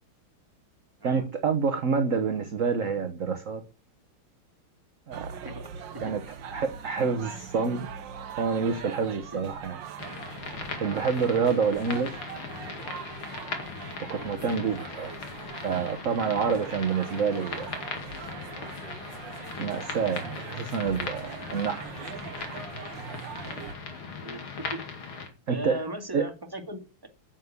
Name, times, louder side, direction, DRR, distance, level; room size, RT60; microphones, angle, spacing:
voice 1, 1.0-3.6 5.1-5.3 6.0-6.2 6.5-7.9 8.4-9.8 10.8-12.2 14.1-15.1 15.6-17.8 19.6-21.9 25.5-25.8 26.1-26.2, right 5 dB, 45° right, 1.3 m, -27 dB
sound 1, 5.1-23.8, right 7 dB, 60° right, 1.6 m, -42 dB
voice 2, 5.4-6.1 9.3-9.4 14.4-14.6 24.2-24.4 24.7-24.8 25.5-27.1, right 1 dB, 10° right, 2.2 m, -38 dB
sound 2, 10.0-25.3, left 4 dB, 65° left, 3.1 m, -39 dB
9.4 x 7.5 x 8.2 m
omnidirectional pair, 2.4 m